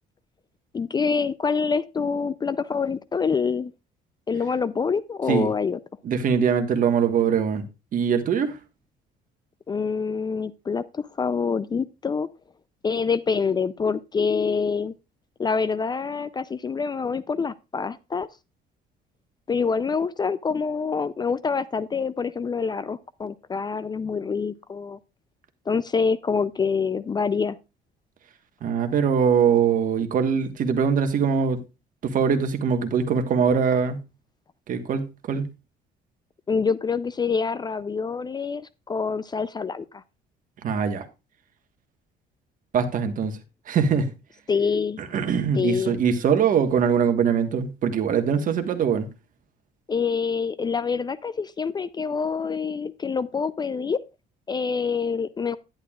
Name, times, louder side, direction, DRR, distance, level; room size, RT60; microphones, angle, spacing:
voice 1, 0.7-3.7 4.3-5.8 9.7-12.3 12.8-14.9 15.4-18.3 19.5-25.0 25.7-27.6 36.5-40.0 44.5-45.0 45.6-46.0 49.9-54.0 54.5-55.6, left 5 dB, 25° left, 0.4 m, -26 dB
voice 2, 6.0-7.6 7.9-8.6 28.6-31.6 32.0-34.0 34.7-35.5 40.6-41.1 42.7-43.3 43.7-44.1 45.1-49.1, right 7 dB, 50° right, 1.4 m, -22 dB
11.0 x 10.5 x 2.4 m
cardioid pair, 110°, 17 cm